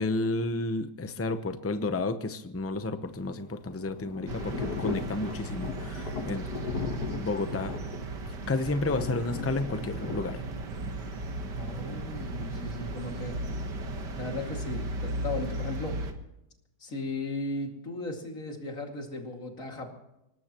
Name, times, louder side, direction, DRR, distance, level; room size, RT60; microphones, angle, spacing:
voice 1, 0.0-6.5 7.1-7.7 8.5-10.4, left 2 dB, 15° left, 9 dB, 0.5 m, -31 dB
Thunder / Rain, 3.1-15.1, left 5 dB, 70° left, 1.8 m, -39 dB
sound 1, 4.3-16.1, right 2 dB, 90° right, 2.1 m, -36 dB
voice 2, 11.5-13.3 14.1-16.0 16.8-19.9, left 2 dB, 50° left, 2 dB, 2.9 m, -36 dB
24.5 x 19.0 x 3.0 m, 0.91 s
omnidirectional pair, 1.8 m